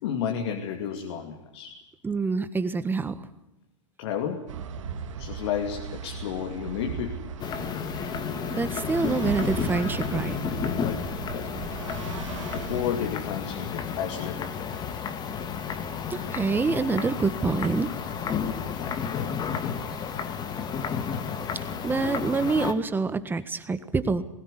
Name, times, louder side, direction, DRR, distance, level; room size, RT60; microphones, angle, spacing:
voice 1, 0.0-1.8 4.0-4.5 5.2-7.3 10.7-11.0 11.3-11.5 12.5-14.5 18.8-19.4, left 8 dB, 65° left, 3 dB, 2.7 m, -32 dB
voice 2, 2.0-3.2 8.5-10.4 16.1-17.9 21.8-24.2, right 4 dB, 10° right, 12 dB, 1.5 m, -26 dB
sound 1, 4.5-13.1, right 6 dB, 80° right, 2.3 m, -37 dB
sound 2, 7.4-22.7, left 7 dB, 25° left, 2.1 m, -32 dB
21.0 x 17.5 x 10.0 m, 0.91 s
hypercardioid pair, 125°, 16 cm